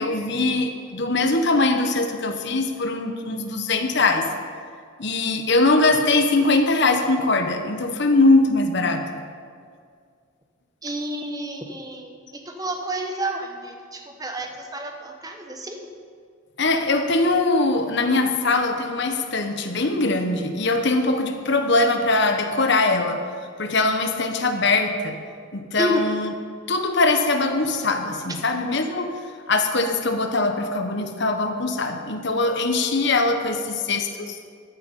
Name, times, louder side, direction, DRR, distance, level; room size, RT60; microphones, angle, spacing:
voice 1, 0.0-4.3 5.0-9.2 16.6-23.2 23.6-25.2 25.5-26.3 26.7-29.1 29.5-34.4, left 2 dB, 55° left, 6 dB, 1.1 m, -21 dB
voice 2, 10.8-15.9 25.8-26.0, right 1 dB, 15° right, 3 dB, 1.1 m, -30 dB
14.0 x 9.4 x 5.4 m, 2.1 s
head